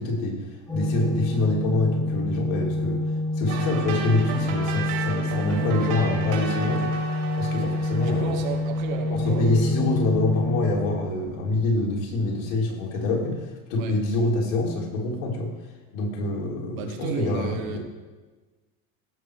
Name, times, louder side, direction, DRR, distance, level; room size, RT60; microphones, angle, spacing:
voice 1, 0.0-3.1 3.4-7.0 7.4-8.3 9.1-15.5 15.9-17.8, left 2 dB, 65° left, -1 dB, 3.2 m, -26 dB
Organ, 0.7-11.6, left 1 dB, 10° left, 1.2 m, -27 dB
sound 1, 3.5-9.4, right 5 dB, 45° right, 2.8 m, -34 dB
voice 2, 8.0-10.1 13.8-13.9 16.7-17.8, right 6 dB, 70° right, 3 dB, 2.1 m, -33 dB
16.5 x 6.4 x 4.7 m, 1.3 s
supercardioid pair, 150°, 42 cm